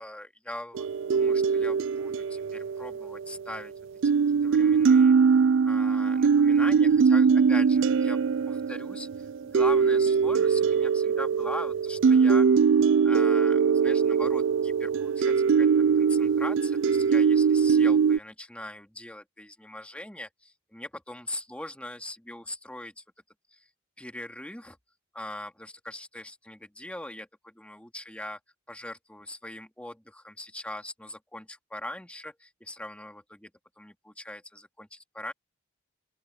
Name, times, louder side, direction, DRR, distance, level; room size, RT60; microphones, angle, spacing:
voice 1, 0.0-3.7 4.4-5.1 5.6-8.2 8.5-12.5 13.0-23.0 23.5-23.6 24.0-24.8 25.1-28.4 28.7-33.5 33.8-35.3, left 1 dB, 5° left, 2.4 m, -41 dB
sound 1, 0.7-3.6 4.0-18.2, right 6 dB, 65° right, 0.4 m, -22 dB
open air
head